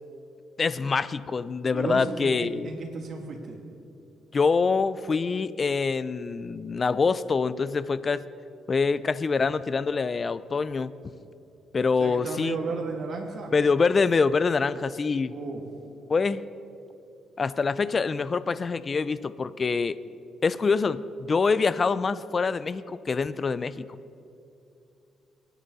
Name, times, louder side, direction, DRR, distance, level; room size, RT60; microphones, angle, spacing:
voice 1, 0.6-2.7 4.3-8.2 8.7-10.9 11.7-12.6 13.5-15.3 16.1-16.4 17.4-20.0 20.4-23.9, left 4 dB, 35° left, 16 dB, 0.5 m, -25 dB
voice 2, 1.7-3.6 12.0-13.5 15.3-15.6, right 3 dB, 55° right, 1 dB, 2.5 m, -34 dB
23.5 x 10.0 x 4.1 m, 2.6 s
cardioid pair, 90°, 0 cm